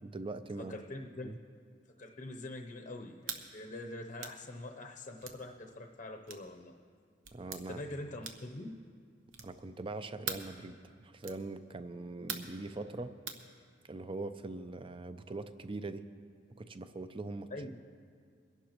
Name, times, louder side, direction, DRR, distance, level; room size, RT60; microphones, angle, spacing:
voice 1, 0.0-0.8 1.2-1.4 7.3-7.8 9.4-13.1 13.8-16.0 16.6-17.5, right 2 dB, 25° right, 11 dB, 0.5 m, -42 dB
voice 2, 0.5-1.3 2.0-6.8 7.7-8.8 17.5-17.8, left 2 dB, 40° left, 2 dB, 0.7 m, -44 dB
sound 1, 3.2-3.4 4.2-4.4 5.2-5.4 6.3-6.5 7.2-7.6 8.2-8.5 9.3-9.6 10.2-10.5 11.2-11.4 12.3-12.6 13.3-13.4, right 6 dB, 85° right, 1.0 m, -41 dB
22.5 x 11.5 x 3.0 m, 2.2 s
head